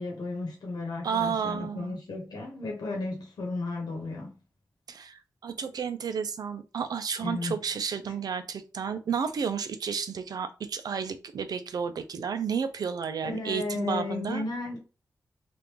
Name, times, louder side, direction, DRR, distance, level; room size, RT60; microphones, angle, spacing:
voice 1, 0.0-4.3 7.2-7.6 8.1-8.2 13.2-14.8, left 2 dB, 75° left, 1.0 m, -34 dB
voice 2, 1.0-2.0 4.9-14.4, right 6 dB, 70° right, 0.4 m, -32 dB
2.9 x 2.4 x 3.5 m
wide cardioid pair, 140°, 7 cm